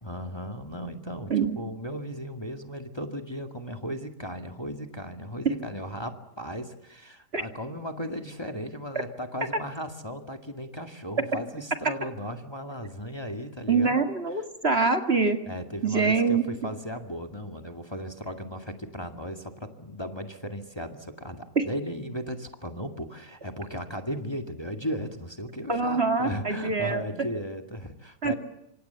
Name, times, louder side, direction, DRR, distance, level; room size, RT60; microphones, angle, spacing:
voice 1, 0.0-14.0 15.5-28.3, equal, 15° left, 5 dB, 2.1 m, -36 dB
voice 2, 13.7-15.4 15.8-16.7 21.6-21.7 25.7-27.3 28.2-28.3, right 4 dB, 40° right, 6 dB, 2.2 m, -25 dB
27.5 x 26.0 x 7.0 m, 0.89 s
omnidirectional pair, 1.7 m